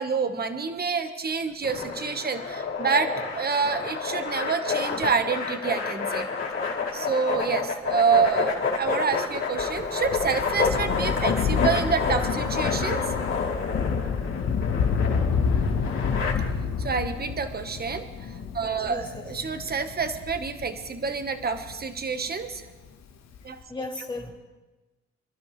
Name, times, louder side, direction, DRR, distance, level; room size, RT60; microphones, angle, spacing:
voice 1, 0.0-6.3 6.9-13.0 16.8-22.6 23.4-23.6, right 5 dB, 30° right, 8 dB, 1.3 m, -27 dB
sound 1, 1.6-16.3, left 5 dB, 45° left, 4.1 m, -29 dB
Thunder, 9.6-22.5 23.3-23.4, left 6 dB, 60° left, 1.3 m, -29 dB
voice 2, 18.8-19.2 23.7-24.3, left 2 dB, 15° left, -1 dB, 2.9 m, -35 dB
27.0 x 12.0 x 3.3 m, 1.2 s
cardioid pair, 90°, 30 cm